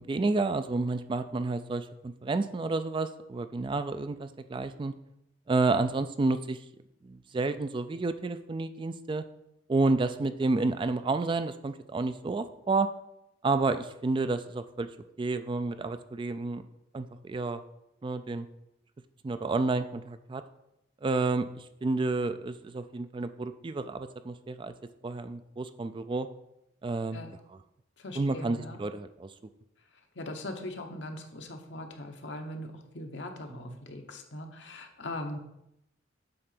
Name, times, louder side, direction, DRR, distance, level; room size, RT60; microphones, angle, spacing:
voice 1, 0.0-4.9 5.5-6.6 7.0-9.2 9.7-12.9 13.4-14.9 15.2-16.6 16.9-17.6 18.0-18.5 19.2-20.4 21.0-24.7 25.0-26.3 26.8-27.2 28.2-29.3, right 3 dB, 25° right, 11 dB, 0.3 m, -30 dB
voice 2, 28.0-28.8 30.1-35.4, left 1 dB, 75° left, 4 dB, 1.1 m, -40 dB
7.8 x 3.8 x 5.9 m, 0.82 s
head